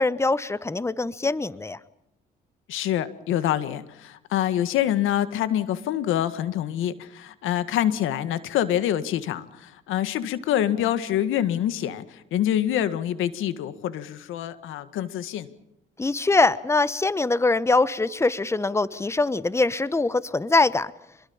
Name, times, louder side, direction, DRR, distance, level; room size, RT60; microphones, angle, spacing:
voice 1, 0.0-1.8 16.0-20.9, left 3 dB, 15° left, 17 dB, 1.1 m, -23 dB
voice 2, 2.7-15.5, left 11 dB, 90° left, 13 dB, 1.8 m, -26 dB
27.0 x 22.0 x 7.2 m, 0.82 s
cardioid pair, 90°, 20 cm